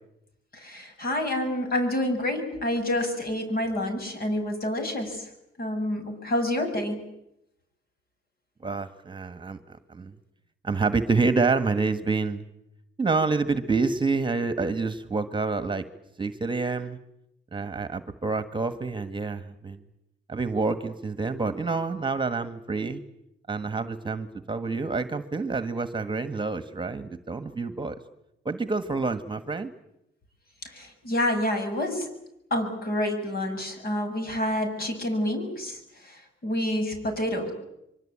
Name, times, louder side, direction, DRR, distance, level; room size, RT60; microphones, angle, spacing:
voice 1, 0.5-5.2 5.6-7.0 30.7-32.1 32.5-35.8 36.0-36.2 36.4-37.5, left 1 dB, 50° left, 5 dB, 7.4 m, -28 dB
voice 2, 8.6-10.1 10.6-12.4 13.0-15.8 16.2-17.0 17.5-19.8 20.3-23.0 23.5-28.0 28.4-29.7, right 4 dB, 25° right, 12 dB, 1.5 m, -28 dB
25.0 x 24.0 x 8.8 m, 0.83 s
cardioid pair, 90°, 20 cm